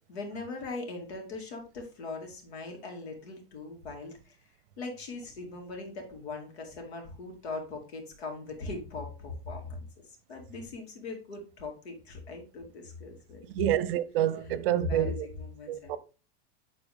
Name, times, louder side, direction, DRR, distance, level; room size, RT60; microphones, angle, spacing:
voice 1, 0.1-4.4 4.8-9.9 10.3-13.4 14.7-16.0, left 3 dB, 80° left, 2.8 m, -40 dB
voice 2, 13.6-15.3 15.7-16.0, right 12 dB, 60° right, 0.8 m, -28 dB
10.5 x 4.1 x 3.6 m
supercardioid pair, 150°, 31 cm